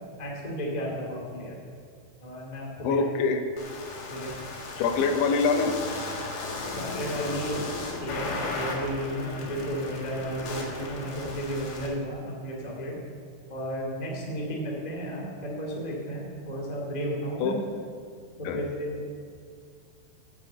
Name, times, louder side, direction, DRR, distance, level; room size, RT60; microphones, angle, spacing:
voice 1, 0.2-1.6 2.2-3.0 4.1-4.4 6.7-7.7 8.0-13.0 13.5-17.6 18.4-19.1, equal, 40° left, -2 dB, 0.5 m, -33 dB
voice 2, 2.8-3.4 4.8-5.8 17.4-17.5 18.5-18.6, left 5 dB, 80° left, 5 dB, 3.3 m, -24 dB
sound 1, 3.6-11.9, left 3 dB, 60° left, 3.4 m, -36 dB
12.5 x 7.5 x 7.9 m, 2.1 s
omnidirectional pair, 5.3 m